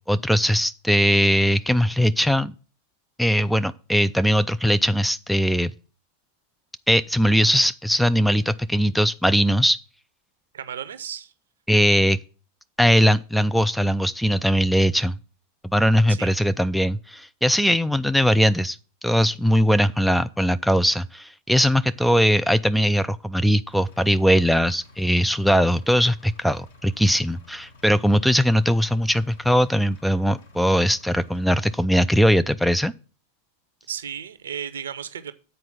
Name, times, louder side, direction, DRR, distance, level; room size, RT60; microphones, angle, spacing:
voice 1, 0.1-2.5 3.2-5.7 6.9-9.8 11.7-12.2 12.8-15.1 15.7-18.8 19.0-32.9, equal, ahead, 0.3 m, -20 dB
voice 2, 10.5-11.3 16.1-16.3 33.9-35.3, right 8 dB, 65° right, 0.7 m, -34 dB
Engine, 23.7-31.8, left 3 dB, 60° left, 1.4 m, -52 dB
7.9 x 4.5 x 7.1 m
figure-of-eight pair, 90°, 0 cm